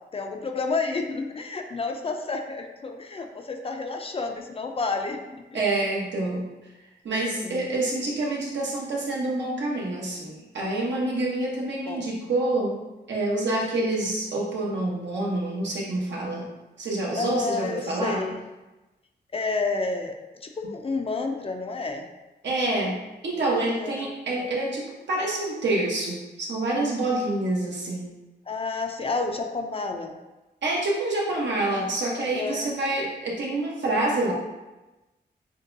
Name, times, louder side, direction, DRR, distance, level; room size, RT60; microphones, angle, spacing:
voice 1, 0.1-5.6 7.1-7.7 11.9-12.2 17.1-18.5 19.3-20.1 20.4-22.1 23.6-24.0 28.5-30.2 32.2-32.7, left 3 dB, 35° left, 4 dB, 0.4 m, -30 dB
voice 2, 5.5-6.7 7.0-12.8 13.1-16.5 16.8-18.2 22.4-28.1 30.6-34.3, right 2 dB, 85° right, -3 dB, 1.1 m, -27 dB
6.4 x 2.2 x 2.6 m, 1.1 s
wide cardioid pair, 140°, 18 cm